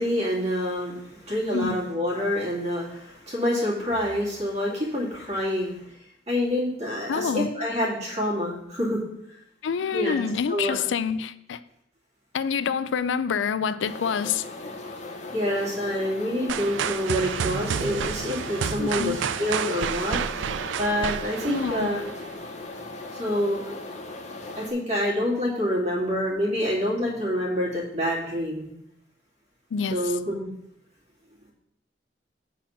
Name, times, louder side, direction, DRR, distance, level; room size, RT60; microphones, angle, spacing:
voice 1, 0.0-5.8 6.3-9.0 9.9-10.2 10.5-10.8 15.3-20.2 20.8-22.1 23.1-23.7 24.6-28.7 29.9-30.5, equal, 35° right, 2.5 m, -27 dB
voice 2, 7.1-7.5 9.6-11.6 12.3-14.4 18.8-19.2 21.5-21.9 29.7-30.2, left 6 dB, 85° left, 0.4 m, -27 dB
sound 1, 13.8-24.7, left 2 dB, 40° left, 0.9 m, -39 dB
sound 2, 16.5-22.4, right 8 dB, 90° right, 0.4 m, -30 dB
8.3 x 4.2 x 5.8 m
head